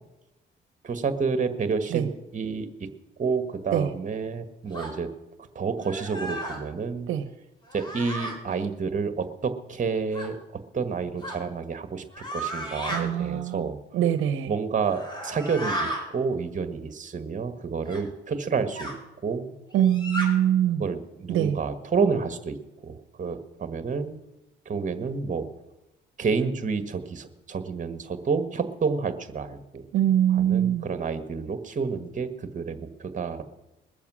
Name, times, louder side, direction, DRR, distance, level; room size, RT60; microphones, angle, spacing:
voice 1, 0.8-2.9 3.2-5.1 5.5-7.1 7.7-10.4 10.7-12.0 12.3-13.8 14.5-19.0 19.2-19.5 20.8-22.6 22.8-24.2 24.6-25.5 26.2-29.9 30.3-33.4, right 5 dB, 40° right, 10 dB, 1.5 m, -29 dB
sound 1, 4.7-4.9 5.8-6.6 7.7-8.3 10.1-10.3 11.2-11.4 12.1-13.0 14.8-16.0 17.9-18.0 18.7-18.9 19.8-20.3, right 1 dB, 25° left, 4.8 m, -33 dB
voice 2, 12.9-13.7 13.9-14.5 19.7-20.8 21.3-21.6 29.9-30.8, right 10 dB, 85° right, 9 dB, 0.8 m, -23 dB
21.0 x 7.2 x 6.2 m, 0.95 s
cardioid pair, 90°, 20 cm